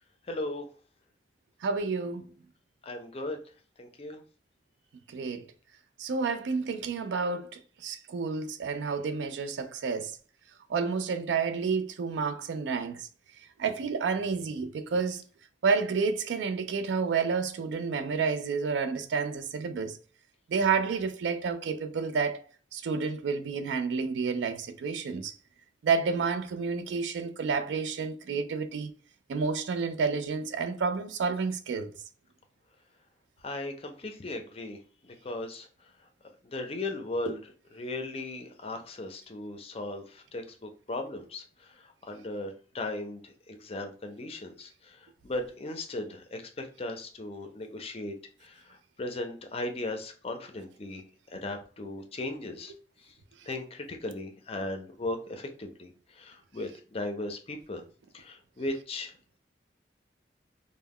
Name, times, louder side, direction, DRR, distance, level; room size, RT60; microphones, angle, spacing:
voice 1, 0.3-0.7 2.8-3.4 3.8-4.2 33.4-36.1 36.4-48.1 48.4-52.7 53.0-53.2 53.5-57.8 58.1-59.4, left 2 dB, 35° left, 0.5 m, -37 dB
voice 2, 1.6-2.2 5.1-5.5 6.0-10.2 10.7-13.1 13.6-15.2 15.6-20.0 20.5-22.4 22.7-25.3 25.8-28.9 29.3-31.9, right 5 dB, 85° right, 0.3 m, -30 dB
2.2 x 2.1 x 3.4 m
head